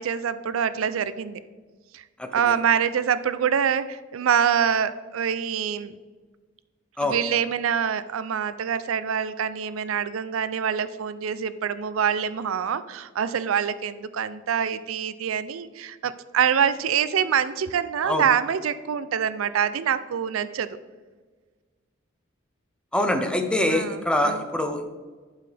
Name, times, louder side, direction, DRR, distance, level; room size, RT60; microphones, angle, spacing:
voice 1, 0.0-1.4 1.9-2.0 2.3-5.9 7.0-20.7 23.7-24.4, right 8 dB, 80° right, 14 dB, 0.4 m, -25 dB
voice 2, 22.9-24.9, left 1 dB, 5° left, 5 dB, 0.7 m, -24 dB
11.5 x 5.5 x 3.4 m, 1.4 s
head